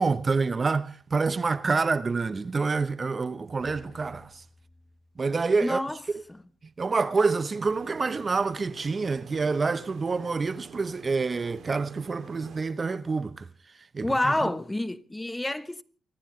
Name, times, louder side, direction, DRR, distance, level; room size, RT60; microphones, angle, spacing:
voice 1, 0.0-4.4 5.2-5.8 6.1-6.2 6.8-13.5 13.9-14.3, right 4 dB, 40° right, 0.9 m, -27 dB
sound 1, 3.6-7.7 8.0-8.2 8.8-8.9, left 2 dB, 50° left, 7.5 m, -56 dB
voice 2, 5.6-6.0 6.3-6.4 14.0-15.8, left 1 dB, 15° left, 1.1 m, -28 dB
sound 2, 7.5-12.7, right 6 dB, 70° right, 2.5 m, -47 dB
28.5 x 14.0 x 3.2 m
supercardioid pair, 50°, 0 cm